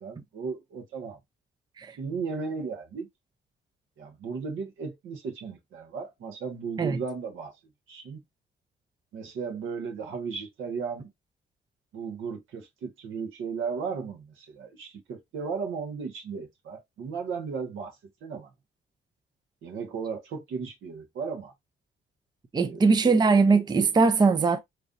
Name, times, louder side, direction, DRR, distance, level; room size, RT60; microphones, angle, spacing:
voice 1, 0.0-1.2 2.0-3.1 4.0-7.5 7.9-8.2 9.1-11.1 11.9-18.0 18.2-18.5 19.6-21.5 22.5-23.1, right 5 dB, 80° right, 1.3 m, -35 dB
voice 2, 22.5-24.6, right 4 dB, 20° right, 0.5 m, -21 dB
3.8 x 3.2 x 2.5 m
cardioid pair, 90°, 20 cm